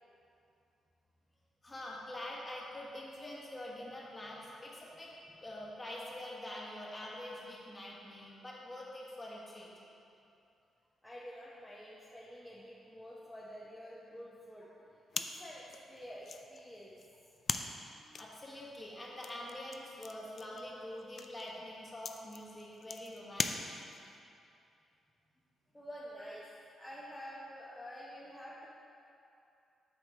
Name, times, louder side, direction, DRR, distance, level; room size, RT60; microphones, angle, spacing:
voice 1, 1.6-5.1 5.4-9.7 18.0-23.7, left 1 dB, 25° left, -4 dB, 1.5 m, -45 dB
voice 2, 11.0-14.7 15.1-17.0 25.7-26.4 26.8-28.7, equal, 5° left, -7 dB, 0.8 m, -48 dB
sound 1, 15.1-24.2, left 5 dB, 50° left, 0.3 m, -42 dB
7.8 x 6.1 x 3.6 m, 2.7 s
cardioid pair, 115°, 0 cm